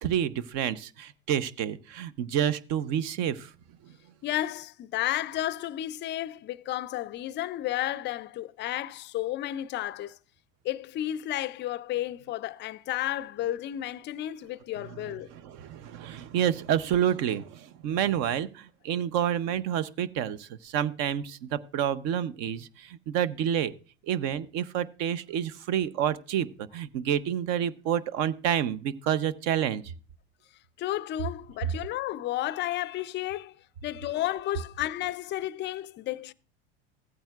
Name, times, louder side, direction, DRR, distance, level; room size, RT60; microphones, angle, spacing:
voice 1, 0.0-3.5 3.8-3.9 15.3-23.7 24.1-29.8, right 10 dB, 55° right, 0.8 m, -29 dB
voice 2, 4.2-10.2 10.6-15.3 30.8-33.6 33.8-36.3, left 13 dB, 35° left, 0.5 m, -32 dB
15.0 x 8.7 x 2.4 m
hypercardioid pair, 100°, 31 cm